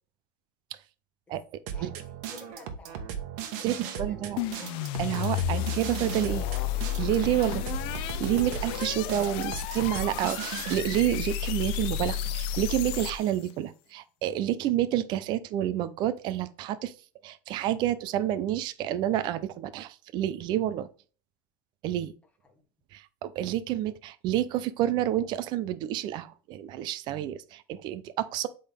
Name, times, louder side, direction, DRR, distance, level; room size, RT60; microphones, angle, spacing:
voice 1, 1.7-3.1 3.6-4.3 4.6-4.8 5.4-5.7 22.5-22.6, left 5 dB, 10° left, 1.4 m, -50 dB
sound 1, 1.7-10.7, right 8 dB, 65° right, 1.4 m, -37 dB
voice 2, 3.6-4.4 5.0-6.5 7.0-7.7 8.0-16.9 17.2-20.9 21.8-22.1 22.9-28.5, right 12 dB, 45° right, 0.6 m, -29 dB
sound 2, 4.4-13.5, left 10 dB, 55° left, 0.6 m, -32 dB
7.9 x 3.9 x 3.5 m
supercardioid pair, 135°, 11 cm